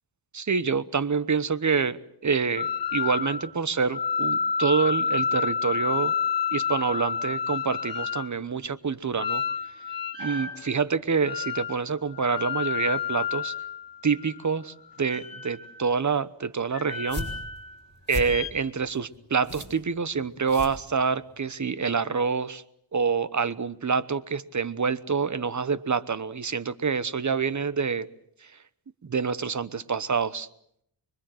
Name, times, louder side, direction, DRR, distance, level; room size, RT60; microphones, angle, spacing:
voice 1, 0.3-6.1 6.5-9.4 10.2-13.5 14.0-17.3 18.1-22.6 22.9-28.1 29.0-30.5, right 5 dB, 45° right, 16 dB, 1.1 m, -27 dB
sound 1, 2.6-3.5 3.9-8.3 9.2-10.6 11.2-11.8 12.1-14.4 15.0-15.8 16.7-17.8 18.1-18.5, left 6 dB, 55° left, 4.0 m, -29 dB
sound 2, 16.9-21.4, left 2 dB, 25° left, 5.8 m, -38 dB
25.5 x 23.0 x 7.9 m, 0.71 s
wide cardioid pair, 95°, 42 cm